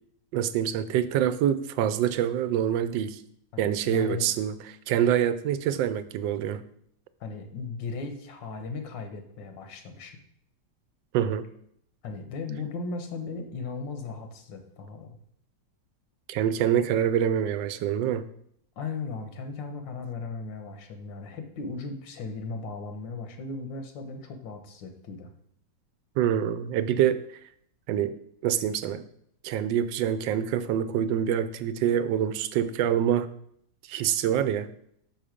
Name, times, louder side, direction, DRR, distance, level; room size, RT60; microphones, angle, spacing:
voice 1, 0.3-3.2 3.6-4.6 4.9-6.6 11.1-11.5 16.3-18.2 26.2-27.2 27.9-28.2 28.4-29.0 29.4-33.3 33.9-34.7, right 9 dB, 85° right, 13 dB, 1.3 m, -25 dB
voice 2, 3.5-4.3 7.2-10.2 12.0-15.2 18.8-25.3, left 4 dB, 85° left, 6 dB, 1.7 m, -37 dB
6.2 x 5.5 x 5.0 m, 0.70 s
omnidirectional pair, 1.9 m